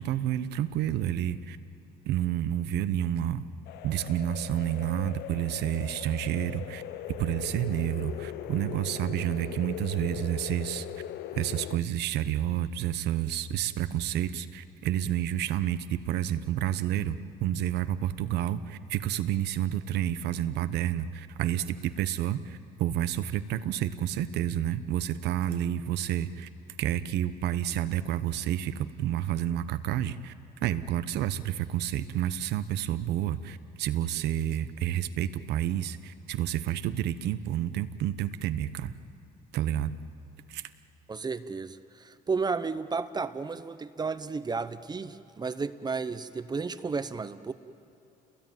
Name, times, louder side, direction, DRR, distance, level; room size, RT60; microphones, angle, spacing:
voice 1, 0.0-1.6 2.0-3.5 3.8-6.8 7.1-10.9 11.3-26.5 26.8-30.3 30.6-38.9 39.5-40.0 40.5-40.6, right 11 dB, 80° right, 12 dB, 1.0 m, -30 dB
sound 1, 3.7-11.8, left 13 dB, 75° left, 0.6 m, -40 dB
voice 2, 41.1-47.5, right 4 dB, 25° right, 11 dB, 0.8 m, -33 dB
29.5 x 21.0 x 9.3 m, 2.9 s
cardioid pair, 110°, 17 cm